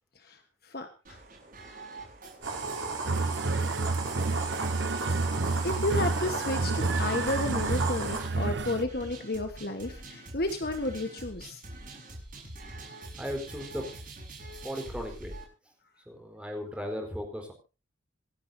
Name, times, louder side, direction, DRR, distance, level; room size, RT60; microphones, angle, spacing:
voice 1, 0.2-1.2 5.6-11.6, left 2 dB, 50° left, 6 dB, 1.4 m, -32 dB
sound 1, 1.0-15.4, right 2 dB, 45° right, 6.7 m, -45 dB
sound 2, 2.4-8.2, right 3 dB, 90° right, 7.1 m, -34 dB
sound 3, 3.0-8.8, right 3 dB, 60° right, 0.9 m, -30 dB
voice 2, 13.2-13.9 14.6-15.4 16.1-17.5, equal, 5° right, 2 dB, 4.3 m, -36 dB
27.5 x 10.0 x 2.8 m, 0.32 s
head